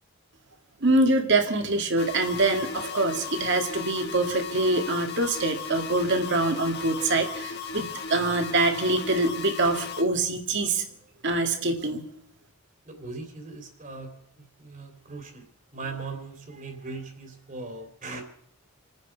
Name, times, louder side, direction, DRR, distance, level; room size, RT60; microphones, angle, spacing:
voice 1, 0.8-10.8 11.2-12.0, right 2 dB, 55° right, 5 dB, 2.0 m, -25 dB
sound 1, 2.0-10.0, left 5 dB, 50° left, 1.7 m, -36 dB
voice 2, 12.8-15.4 15.7-18.2, right 3 dB, 40° right, 4 dB, 2.9 m, -39 dB
29.0 x 9.7 x 4.6 m, 0.67 s
head